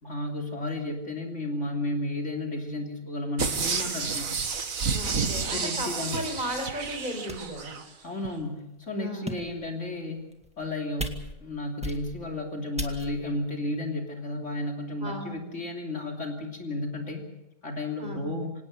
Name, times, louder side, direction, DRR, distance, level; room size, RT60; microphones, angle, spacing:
voice 1, 0.0-4.3 5.4-6.2 8.0-10.2 10.6-17.2 17.6-18.5, left 2 dB, 45° left, 1 dB, 3.3 m, -33 dB
sound 1, 3.4-7.8 8.3-8.4, right 5 dB, 55° right, 1.9 m, -30 dB
voice 2, 4.9-7.8 9.0-9.3 15.0-15.4 18.0-18.4, equal, 30° right, 4 dB, 4.7 m, -35 dB
sound 2, 7.3-7.6 8.3-8.4 9.1-9.7 10.3-10.7 11.0-11.5 11.8-12.3 12.8-13.3, right 1 dB, 5° right, 1.8 m, -36 dB
26.0 x 18.0 x 6.5 m, 0.93 s
omnidirectional pair, 1.7 m